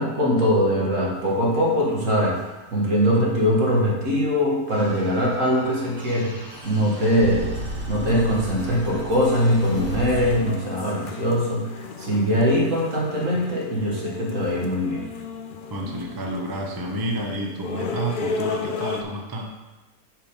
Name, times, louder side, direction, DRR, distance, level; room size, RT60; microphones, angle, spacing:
voice 1, 0.0-2.4 2.7-6.3 6.6-7.5 7.9-15.1, equal, 60° right, -3 dB, 1.9 m, -22 dB
sound 1, 1.3-2.1 2.4-2.5 2.9-3.0 3.4-3.5 3.7-3.8 4.2-4.3 4.9-5.0 5.3-5.6 6.1-6.2 6.8-7.2 7.4-8.0 8.3-8.4 8.7-19.0, left 5 dB, 70° left, 0.4 m, -35 dB
sound 2, 4.7-10.3, right 1 dB, 75° right, 3.1 m, -35 dB
voice 2, 15.7-19.5, right 1 dB, 20° right, 0 dB, 0.6 m, -30 dB
5.7 x 5.0 x 5.2 m, 1.1 s
omnidirectional pair, 1.5 m